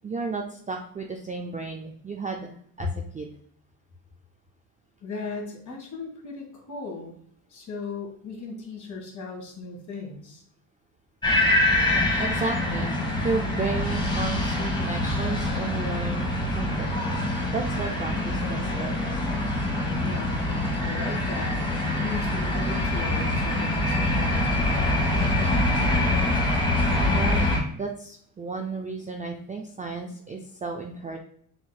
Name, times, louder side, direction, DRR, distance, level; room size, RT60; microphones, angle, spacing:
voice 1, 0.0-2.9 3.1-3.3 12.2-17.0 17.5-19.1 27.1-27.5 27.7-31.2, right 4 dB, 15° right, 2 dB, 0.4 m, -33 dB
voice 2, 5.0-7.2 7.5-10.4 20.0-21.6 22.0-24.7, left 4 dB, 35° left, 0 dB, 1.8 m, -37 dB
sound 1, 11.2-27.6, left 1 dB, 10° left, 1.3 m, -25 dB
6.4 x 3.0 x 2.3 m, 0.62 s
supercardioid pair, 85°, 49 cm